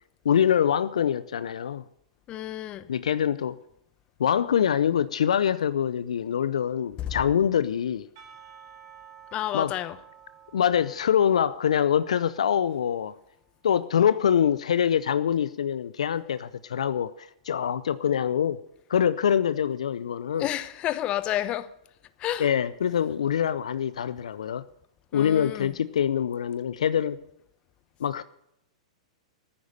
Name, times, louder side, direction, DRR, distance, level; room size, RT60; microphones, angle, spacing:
voice 1, 0.2-1.8 2.9-3.6 4.2-8.1 9.5-9.7 10.5-13.1 13.6-18.6 18.9-20.5 22.4-24.6 25.1-27.2 28.0-28.2, left 8 dB, 70° left, 0.6 m, -24 dB
voice 2, 2.3-2.9 7.0-7.1 9.3-9.9 20.4-21.7 22.2-22.5 25.1-25.7, left 13 dB, 30° left, 1.0 m, -30 dB
Percussion / Church bell, 8.2-13.2, right 8 dB, 55° right, 4.5 m, -52 dB
14.0 x 9.8 x 6.5 m
hypercardioid pair, 110°, 4 cm